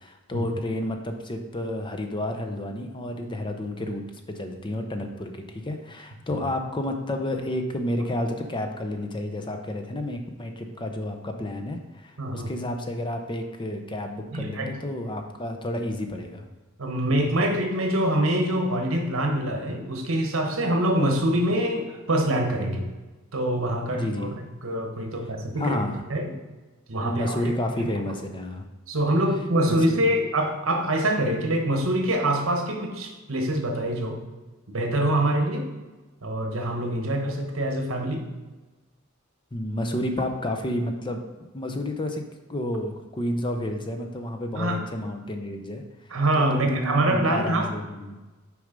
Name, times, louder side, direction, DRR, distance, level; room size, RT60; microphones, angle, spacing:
voice 1, 0.0-4.0 4.3-16.4 23.9-24.3 25.6-26.0 27.0-28.6 29.7-30.0 39.5-41.2 41.5-42.2 42.5-45.8 46.4-48.2, left 1 dB, 25° left, 5 dB, 0.6 m, -30 dB
voice 2, 12.2-12.5 14.3-14.7 16.8-22.9 23.3-25.8 26.1-26.4 26.9-27.4 27.8-27.9 28.9-34.2 34.7-35.7 36.2-38.2 44.6-44.8 46.1-47.7, right 1 dB, 75° right, 4 dB, 1.2 m, -25 dB
6.3 x 4.8 x 5.2 m, 1.2 s
head